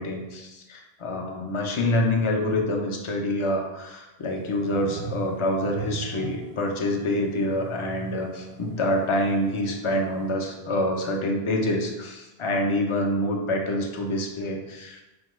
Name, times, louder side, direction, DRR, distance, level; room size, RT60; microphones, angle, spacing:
voice 1, 0.0-15.0, left 1 dB, 50° left, 1 dB, 0.4 m, -26 dB
Heizkörper groß, 4.2-10.3, right 5 dB, 60° right, 0.6 m, -41 dB
4.4 x 2.2 x 3.0 m, 1.0 s
omnidirectional pair, 1.1 m